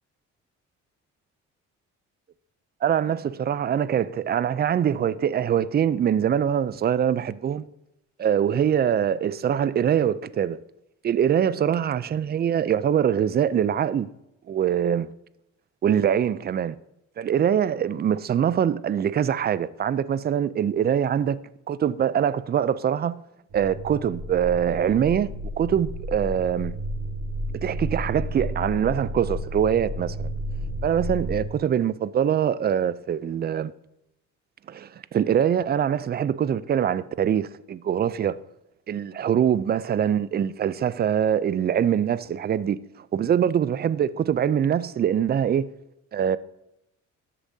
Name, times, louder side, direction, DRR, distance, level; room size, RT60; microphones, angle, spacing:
voice 1, 2.8-7.7 8.2-10.6 11.0-14.1 14.5-15.1 15.8-16.8 17.2-21.4 21.7-23.1 23.5-25.3 25.6-26.7 27.6-30.3 30.8-33.7 34.7-38.4 38.9-45.7 46.1-46.4, right 9 dB, 35° right, 0.4 m, -23 dB
sound 1, 23.5-31.5, equal, 55° right, 1.4 m, -32 dB
12.5 x 6.9 x 2.7 m
cardioid pair, 90°, 30 cm